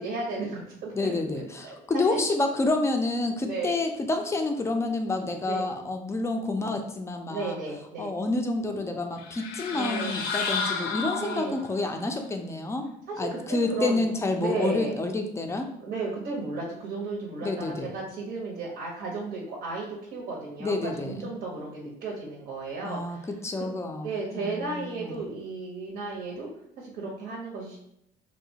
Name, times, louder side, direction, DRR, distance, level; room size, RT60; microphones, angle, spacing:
voice 1, 0.0-2.2 3.4-3.8 5.5-5.7 7.3-8.1 9.7-10.2 11.2-11.6 13.1-14.1 14.4-15.0 15.8-23.3 23.6-23.7 24.0-26.5 26.8-27.8, right 3 dB, 75° right, -3 dB, 0.8 m, -34 dB
voice 2, 0.9-7.6 8.0-12.9 13.2-15.7 17.4-18.0 20.6-21.1 22.8-25.2, left 2 dB, 15° left, 4 dB, 0.3 m, -29 dB
sound 1, 9.2-11.8, left 5 dB, 75° left, 0.5 m, -31 dB
2.8 x 2.0 x 2.7 m, 0.75 s
cardioid pair, 110°, 17 cm